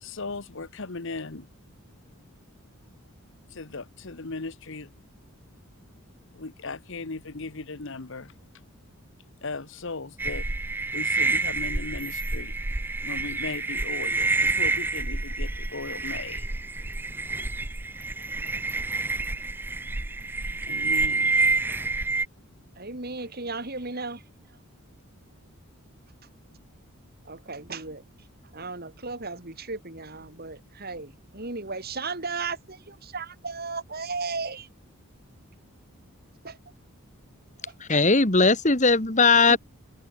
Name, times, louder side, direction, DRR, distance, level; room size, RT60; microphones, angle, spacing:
voice 1, 0.0-1.5 3.5-4.9 6.3-8.3 9.4-10.4 10.9-12.5 13.0-16.5 20.7-21.3, left 3 dB, 55° left, 1.1 m, -37 dB
sound 1, 10.2-22.3, right 3 dB, 10° right, 0.4 m, -28 dB
voice 2, 22.7-24.2 24.5-24.6 27.2-28.0 28.4-34.7 36.4-36.6 37.6-37.8 39.5-39.6, right 4 dB, 45° right, 3.1 m, -35 dB
voice 3, 37.8-39.6, left 4 dB, 35° left, 1.9 m, -19 dB
head